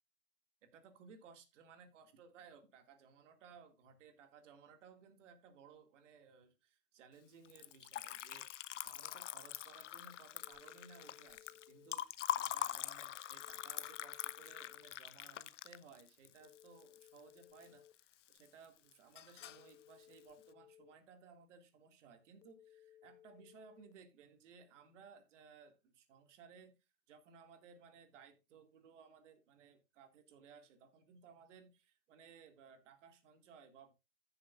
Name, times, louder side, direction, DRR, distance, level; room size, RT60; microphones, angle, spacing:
voice 1, 0.7-26.7 27.1-33.9, right 6 dB, 45° right, 2.1 m, -60 dB
Liquid, 7.4-17.7 18.0-18.7 18.9-19.7, left 12 dB, 50° left, 0.6 m, -44 dB
Telephone, 8.9-9.9 10.4-11.9 13.4-14.9 16.4-17.9 19.4-20.9 22.4-23.9, left 11 dB, 80° left, 1.1 m, -63 dB
15.0 x 7.0 x 2.4 m
hypercardioid pair, 150°, 49 cm